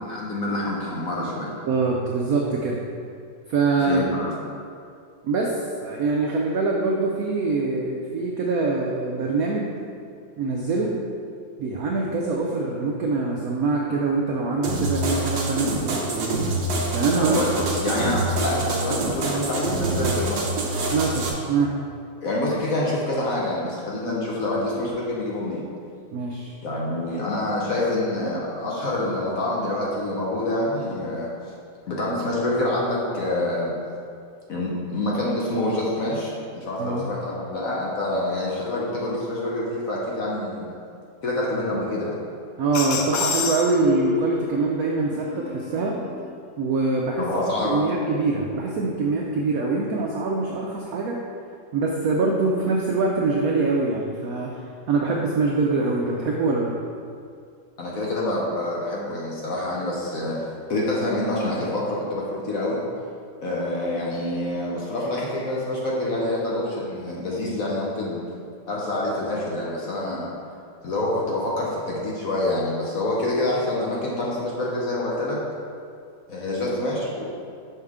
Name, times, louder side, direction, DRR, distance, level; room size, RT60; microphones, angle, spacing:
voice 1, 0.0-1.5 3.8-4.3 17.2-20.5 22.2-25.7 26.6-31.3 31.9-33.7 34.5-40.7 41.2-42.2 47.2-47.8 57.8-60.4 60.7-62.8 63.4-68.2 68.7-70.3 70.8-75.4 76.3-77.2, left 1 dB, 55° left, -4 dB, 1.0 m, -26 dB
voice 2, 1.7-2.8 3.5-4.1 5.2-9.7 10.4-10.9 11.6-16.6 16.9-17.4 20.9-21.7 26.1-26.5 36.8-37.1 42.6-46.0 46.6-47.2 47.6-51.2 51.7-54.6 54.9-56.8, right 3 dB, 85° right, -1 dB, 0.8 m, -24 dB
sound 1, 14.6-21.3, right 2 dB, 70° right, 1.5 m, -26 dB
sound 2, 42.7-44.5 45.1-46.2, left 6 dB, 75° left, 1.3 m, -28 dB
5.7 x 5.6 x 3.6 m, 2.4 s
omnidirectional pair, 2.2 m